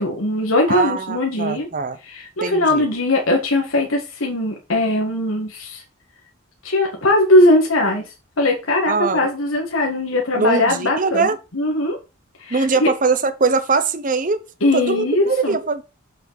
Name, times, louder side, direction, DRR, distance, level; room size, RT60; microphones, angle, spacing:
voice 1, 0.0-1.7 2.0-5.8 6.6-12.0 12.4-12.9 14.6-15.6, left 1 dB, 70° left, 1.8 m, -20 dB
voice 2, 0.7-2.0 2.4-2.8 8.9-9.3 10.3-11.4 12.5-14.5 14.7-15.8, right 4 dB, 40° right, 0.9 m, -21 dB
7.1 x 6.4 x 4.1 m
head